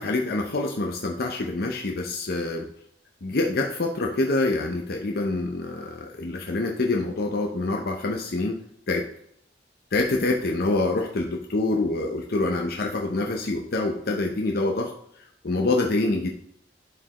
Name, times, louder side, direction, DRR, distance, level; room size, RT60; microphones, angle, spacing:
voice 1, 0.0-2.7 3.2-8.6 8.9-9.1 9.9-14.9 15.2-16.3, left 2 dB, 60° left, 1 dB, 0.7 m, -26 dB
11.0 x 4.5 x 3.0 m, 0.71 s
head